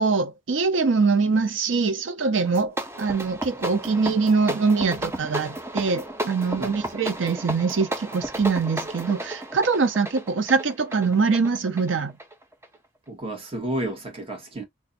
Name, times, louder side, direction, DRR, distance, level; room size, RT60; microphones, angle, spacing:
voice 1, 0.0-12.1, right 4 dB, 90° right, 0.6 m, -23 dB
sound 1, 2.4-12.8, right 1 dB, 15° right, 0.5 m, -33 dB
voice 2, 13.1-14.6, right 1 dB, 30° right, 1.1 m, -31 dB
2.6 x 2.3 x 3.8 m
head